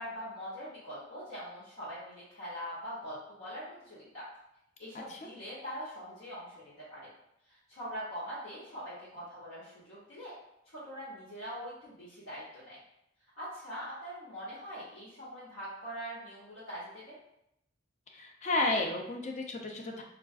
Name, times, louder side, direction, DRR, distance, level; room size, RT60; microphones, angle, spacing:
voice 1, 0.0-4.2 4.8-7.1 7.5-10.3 10.7-12.8 13.4-17.2, equal, 80° left, -10 dB, 0.9 m, -43 dB
voice 2, 18.1-20.0, left 2 dB, 35° left, 2 dB, 0.4 m, -32 dB
3.6 x 2.4 x 2.3 m, 0.82 s
head